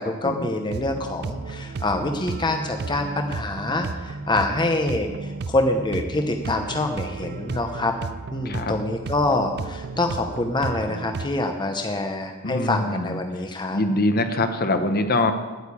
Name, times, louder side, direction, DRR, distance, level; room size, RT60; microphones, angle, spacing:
voice 1, 0.0-7.9 8.3-13.8, left 2 dB, 20° left, 5 dB, 0.8 m, -26 dB
sound 1, 0.7-11.3, right 3 dB, 50° right, 0.5 m, -33 dB
voice 2, 12.4-13.2 13.7-15.3, left 2 dB, 45° left, 8 dB, 1.0 m, -23 dB
9.1 x 8.9 x 8.5 m, 1.3 s
head